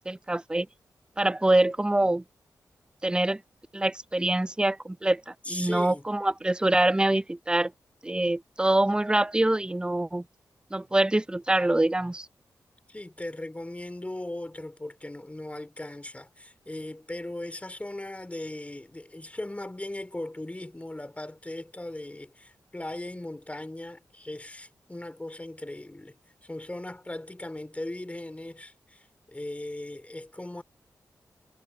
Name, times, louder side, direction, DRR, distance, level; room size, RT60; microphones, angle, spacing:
voice 1, 0.1-0.7 1.2-2.2 3.0-3.4 3.7-7.7 8.0-10.2 10.7-12.3, right 1 dB, 10° right, 0.5 m, -25 dB
voice 2, 5.4-6.0 12.9-26.2 26.4-30.6, left 1 dB, 20° left, 2.9 m, -38 dB
supercardioid pair, 40°, 7 cm